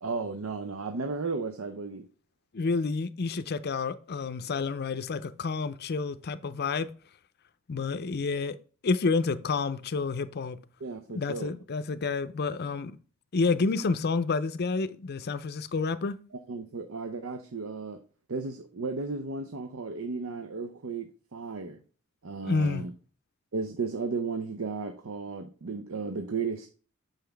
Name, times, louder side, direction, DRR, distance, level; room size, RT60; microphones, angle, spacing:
voice 1, 0.0-2.1 10.8-11.5 16.3-18.0 18.3-21.8 22.2-22.9 23.5-26.7, right 4 dB, 75° right, 0.6 m, -34 dB
voice 2, 2.5-6.9 7.7-8.6 8.8-10.6 11.1-13.0 13.3-16.1 22.4-22.8, left 4 dB, 50° left, 0.5 m, -29 dB
6.9 x 5.7 x 3.4 m
head